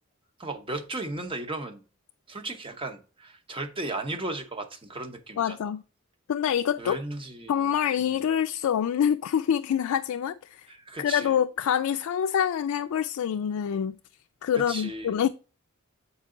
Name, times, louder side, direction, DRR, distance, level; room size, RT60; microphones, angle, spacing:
voice 1, 0.4-1.8 2.3-5.7 6.8-7.6 8.0-8.2 10.7-11.4 14.5-15.2, right 2 dB, 25° right, 0.9 m, -36 dB
voice 2, 5.4-5.8 6.3-7.0 7.5-10.7 11.0-14.0 14.4-15.3, left 8 dB, 85° left, 0.3 m, -26 dB
7.2 x 4.7 x 3.8 m
head